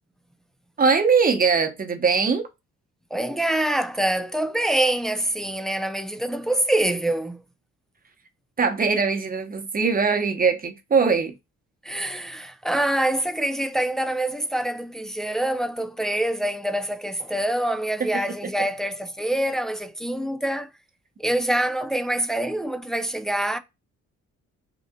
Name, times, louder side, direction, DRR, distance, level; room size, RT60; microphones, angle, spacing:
voice 1, 0.8-2.5 8.6-11.3 18.0-18.1, right 5 dB, 30° right, 1.0 m, -21 dB
voice 2, 3.1-7.4 11.8-20.7 21.2-23.6, right 1 dB, ahead, 0.4 m, -25 dB
3.8 x 2.5 x 3.6 m
cardioid pair, 90°, 30 cm